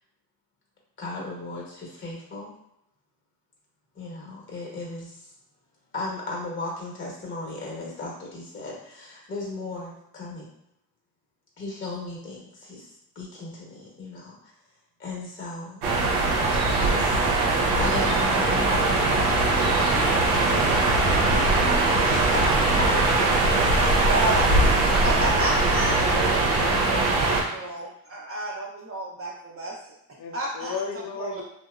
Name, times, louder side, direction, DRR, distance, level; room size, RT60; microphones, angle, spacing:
voice 1, 1.0-2.5 3.9-5.3 5.9-10.5 11.6-14.5 15.0-15.8 16.7-17.2 17.8-19.7 21.3-21.5 22.0-23.0 23.5-23.6 24.1-24.2, left 2 dB, 30° left, -2 dB, 0.9 m, -36 dB
sound 1, 15.8-27.4, right 2 dB, 90° right, 0.7 m, -21 dB
voice 2, 23.8-24.7 25.0-26.0 26.8-29.8 30.3-30.8 31.2-31.4, right 2 dB, 35° right, -4 dB, 0.6 m, -31 dB
voice 3, 25.6-27.3 30.2-31.4, left 5 dB, 45° left, 4 dB, 0.5 m, -36 dB
2.7 x 2.0 x 2.3 m, 0.81 s
cardioid pair, 90°, 42 cm